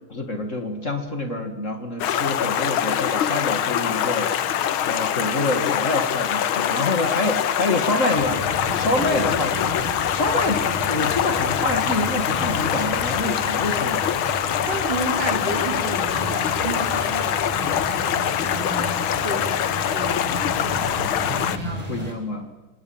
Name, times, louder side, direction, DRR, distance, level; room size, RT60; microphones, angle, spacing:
voice 1, 0.1-4.5 4.9-8.5 8.7-14.2 21.9-22.5, left 2 dB, 40° left, 7 dB, 2.3 m, -26 dB
Stream, 2.0-21.6, left 9 dB, 80° left, 1.9 m, -24 dB
sound 1, 8.2-22.1, equal, 15° right, 5.6 m, -33 dB
voice 2, 8.9-9.3 14.7-19.0 19.2-20.7 21.3-22.1, right 2 dB, 60° right, 3 dB, 5.1 m, -32 dB
28.0 x 24.5 x 8.7 m, 1.2 s
omnidirectional pair, 2.2 m